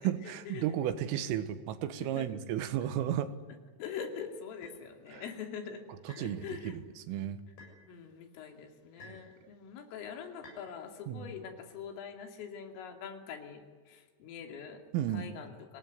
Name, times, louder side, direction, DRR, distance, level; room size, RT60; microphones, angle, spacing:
voice 1, 0.0-3.3 5.1-5.2 6.2-6.8 7.1-7.4 9.0-9.2 11.1-11.3 14.9-15.3, right 11 dB, 85° right, 11 dB, 3.9 m, -33 dB
voice 2, 3.8-5.9 6.2-6.8 7.9-14.8 15.1-15.8, left 7 dB, 85° left, 4 dB, 5.2 m, -44 dB
sound 1, 4.6-4.8 6.1-6.3 7.6-7.8 9.0-9.3 10.4-10.7, left 2 dB, 55° left, 9.6 m, -52 dB
25.0 x 19.0 x 9.6 m, 1.5 s
omnidirectional pair, 5.7 m